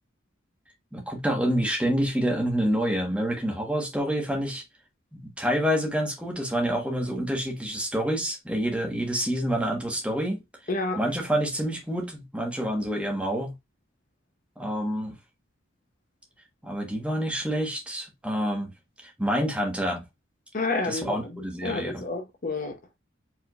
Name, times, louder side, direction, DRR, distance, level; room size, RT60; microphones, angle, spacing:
voice 1, 0.9-4.6 5.1-10.4 11.0-13.5 14.6-15.1 16.6-18.7 19.0-20.0 20.9-22.0, equal, 5° right, 1.3 m, -27 dB
voice 2, 10.7-11.0 20.5-22.8, left 3 dB, 45° left, 0.8 m, -30 dB
4.7 x 3.6 x 2.4 m
head